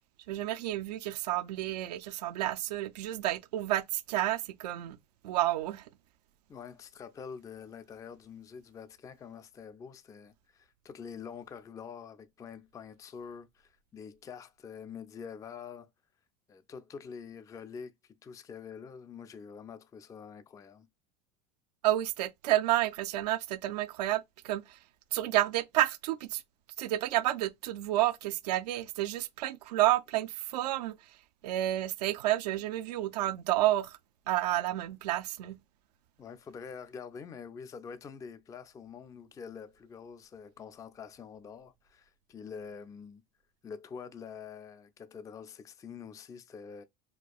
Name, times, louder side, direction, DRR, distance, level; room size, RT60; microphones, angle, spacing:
voice 1, 0.3-5.0 5.2-5.8 21.8-24.8 25.1-26.4 26.8-31.0 31.4-34.0 34.3-35.6, right 15 dB, 90° right, 0.5 m, -30 dB
voice 2, 6.5-15.9 16.5-20.9 36.2-43.2 43.6-46.8, left 6 dB, 15° left, 0.3 m, -46 dB
4.3 x 2.3 x 2.3 m
supercardioid pair, 105°, 20 cm